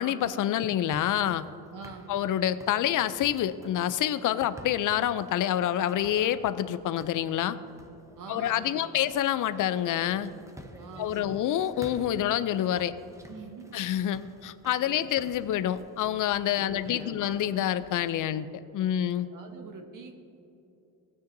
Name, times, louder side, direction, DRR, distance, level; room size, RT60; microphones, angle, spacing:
voice 1, 0.0-1.4 2.1-7.6 8.3-10.3 11.0-13.0 13.7-19.3, left 11 dB, 55° left, 14 dB, 0.5 m, -27 dB
sound 1, 0.9-18.3, right 1 dB, 10° right, 0.8 m, -51 dB
voice 2, 1.7-2.1 4.4-4.5 8.2-9.0 10.8-11.4 13.3-13.7 14.8-15.1 16.5-17.2 19.3-20.2, right 4 dB, 55° right, 4 dB, 1.1 m, -45 dB
16.0 x 9.4 x 2.7 m, 2.9 s
cardioid pair, 105°, 38 cm